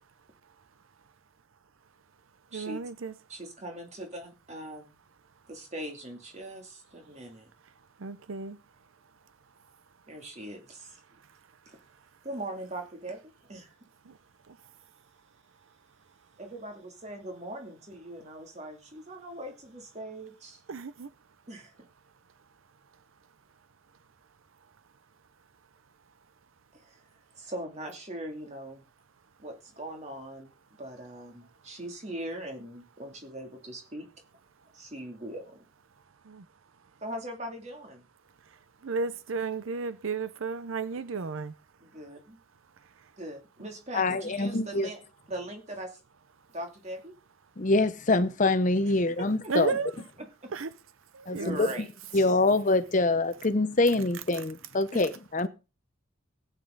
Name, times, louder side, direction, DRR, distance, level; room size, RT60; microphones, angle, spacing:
voice 1, 2.5-3.1 8.0-8.6 20.7-21.1 36.3-36.4 38.8-41.5 49.5-49.9 50.5-50.7 51.1-51.5, right 4 dB, 70° right, 0.6 m, -33 dB
voice 2, 3.3-4.8 5.5-7.5 10.1-11.0 11.7-11.8 12.2-13.2 13.5-13.7 16.4-20.6 21.5-21.9 26.7-27.0 27.4-28.8 29.4-30.5 30.8-34.1 34.7-35.6 37.0-38.0 41.8-42.4 43.2-46.0 46.5-47.1 48.8-49.6 50.0-50.5 51.3-52.4 54.9-55.0, right 1 dB, 30° right, 2.7 m, -41 dB
voice 3, 43.9-44.9 47.6-49.7 51.3-51.7 52.1-55.5, left 2 dB, 35° left, 0.7 m, -25 dB
16.0 x 9.1 x 3.9 m
head